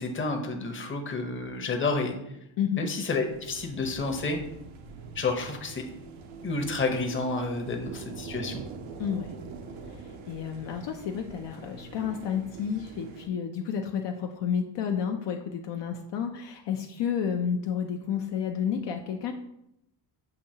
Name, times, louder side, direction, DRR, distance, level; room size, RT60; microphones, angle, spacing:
voice 1, 0.0-2.1 2.8-4.4 5.1-5.9 6.4-8.6, left 3 dB, 25° left, 4 dB, 0.8 m, -30 dB
sound 1, 3.2-13.3, right 4 dB, 75° right, 0.7 m, -44 dB
voice 2, 9.0-9.3 9.9-19.3, left 7 dB, 60° left, 3 dB, 0.5 m, -31 dB
6.8 x 2.8 x 2.7 m, 0.83 s
cardioid pair, 80°, 48 cm